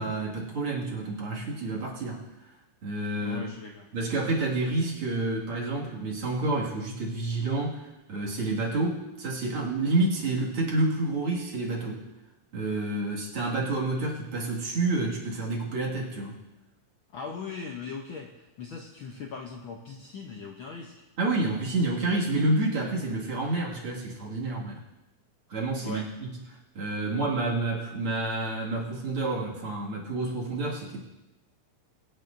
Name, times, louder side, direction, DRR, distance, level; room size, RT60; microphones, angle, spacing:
voice 1, 0.0-2.2 2.8-3.4 3.9-12.0 12.5-16.4 21.2-24.8 25.5-26.3 26.7-31.0, right 2 dB, 50° right, -4 dB, 2.8 m, -29 dB
voice 2, 3.2-3.9 17.1-21.0 25.8-26.1, left 5 dB, 90° left, 2 dB, 1.1 m, -39 dB
23.0 x 9.7 x 2.6 m, 1.0 s
omnidirectional pair, 3.4 m